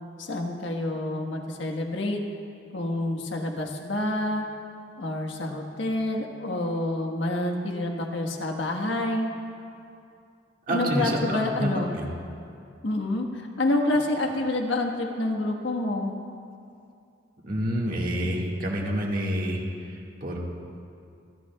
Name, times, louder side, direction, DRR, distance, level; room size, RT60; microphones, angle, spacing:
voice 1, 0.2-2.2 2.7-4.4 5.0-9.3 10.7-11.9 12.8-16.1, left 1 dB, 80° left, 2 dB, 1.4 m, -28 dB
voice 2, 10.7-12.1 17.4-20.4, equal, 45° right, -2 dB, 1.9 m, -28 dB
28.5 x 13.0 x 2.3 m, 2.5 s
head